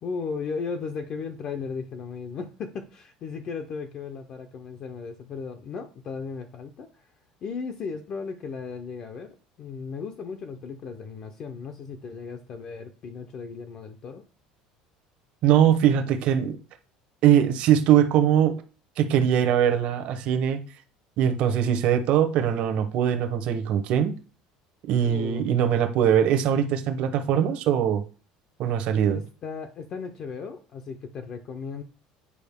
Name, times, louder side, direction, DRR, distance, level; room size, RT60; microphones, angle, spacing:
voice 1, 0.0-7.0 7.4-14.2 25.0-25.5 29.1-31.8, left 5 dB, 35° left, 0.6 m, -36 dB
voice 2, 15.4-16.6 17.2-18.6 19.0-20.6 21.2-24.2 24.9-28.0 28.6-29.2, right 9 dB, 50° right, 0.9 m, -21 dB
8.4 x 4.9 x 3.5 m
cardioid pair, 165°, 2 cm